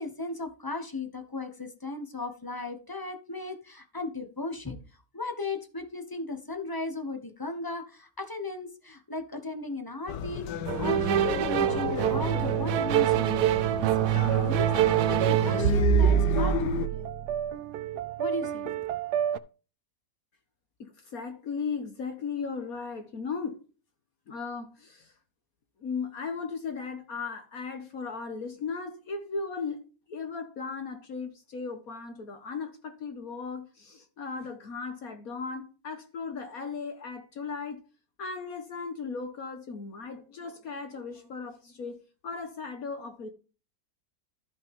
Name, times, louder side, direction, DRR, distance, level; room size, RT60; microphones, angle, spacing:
voice 1, 0.0-4.8 5.1-10.5 10.8-17.1 18.2-18.9, left 2 dB, 15° left, 1.0 m, -36 dB
sound 1, 10.1-16.9, left 8 dB, 80° left, 1.3 m, -33 dB
sound 2, 10.7-19.4, right 10 dB, 75° right, 1.1 m, -25 dB
voice 2, 20.8-23.6 24.3-25.1 25.8-29.8 30.1-37.8 38.2-42.0 42.2-43.3, left 5 dB, 60° left, 1.5 m, -36 dB
14.0 x 5.8 x 3.6 m
omnidirectional pair, 1.8 m